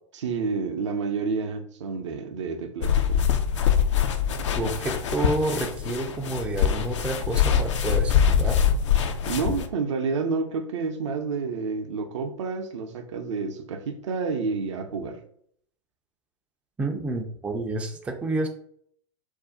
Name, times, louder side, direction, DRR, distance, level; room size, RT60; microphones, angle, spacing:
voice 1, 0.1-3.3 9.3-15.2, right 4 dB, 65° right, 0.5 m, -29 dB
sound 1, 2.8-9.7, left 8 dB, 70° left, 0.4 m, -23 dB
voice 2, 4.5-8.6 16.8-18.5, right 2 dB, 10° right, 0.3 m, -29 dB
2.5 x 2.1 x 3.5 m
figure-of-eight pair, 95°, 16 cm